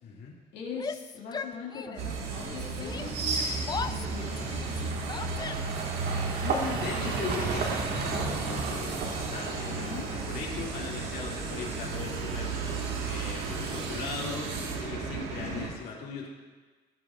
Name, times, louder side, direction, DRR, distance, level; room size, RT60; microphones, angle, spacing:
voice 1, 0.0-0.3 6.4-16.3, left 5 dB, 65° left, -3 dB, 2.3 m, -39 dB
voice 2, 0.5-3.5 3.9-5.3 9.7-10.1 15.3-15.7, left 5 dB, 85° left, -5 dB, 2.1 m, -41 dB
Yell, 0.7-2.2 2.4-5.9, left 5 dB, 25° left, 0.4 m, -39 dB
sound 1, 2.0-15.7, right 4 dB, 90° right, 1.7 m, -34 dB
sound 2, 3.0-14.8, right 4 dB, 70° right, 1.7 m, -36 dB
17.5 x 8.6 x 2.5 m, 1.3 s
cardioid pair, 110°, 17 cm